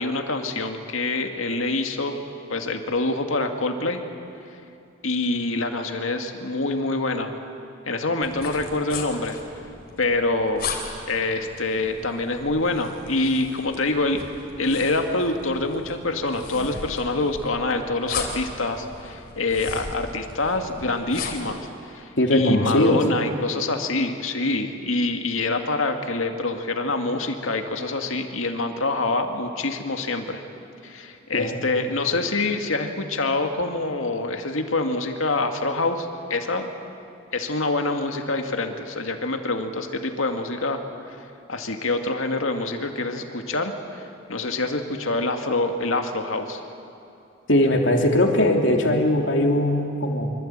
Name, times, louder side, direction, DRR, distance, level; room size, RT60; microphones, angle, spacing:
voice 1, 0.0-2.2 2.5-4.0 5.0-7.3 7.9-9.4 10.0-10.7 11.1-14.3 14.6-30.4 30.8-36.7 37.3-40.8 41.1-46.6, left 2 dB, 85° left, 5 dB, 2.2 m, -26 dB
sound 1, 8.2-21.6, left 4 dB, 45° left, 3.7 m, -37 dB
voice 2, 22.2-23.0 31.3-31.7 47.5-50.3, left 1 dB, 65° left, 2 dB, 3.2 m, -20 dB
25.0 x 25.0 x 8.9 m, 2.7 s
head